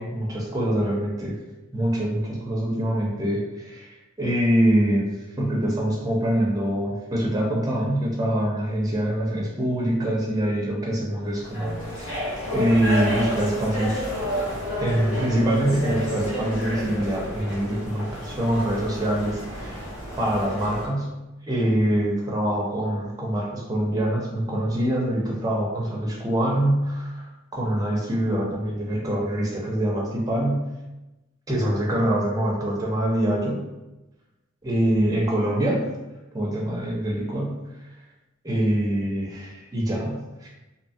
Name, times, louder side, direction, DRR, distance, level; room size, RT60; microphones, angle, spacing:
voice 1, 0.0-1.4 1.7-5.1 5.4-14.1 14.8-19.8 20.2-21.1 21.5-27.3 27.5-30.7 31.5-33.6 34.6-35.9 36.3-37.6 38.4-40.5, right 1 dB, 20° right, -3 dB, 0.5 m, -24 dB
sound 1, 11.3-20.9, left 1 dB, 85° left, 1.0 m, -31 dB
2.7 x 2.2 x 2.6 m, 1.0 s
head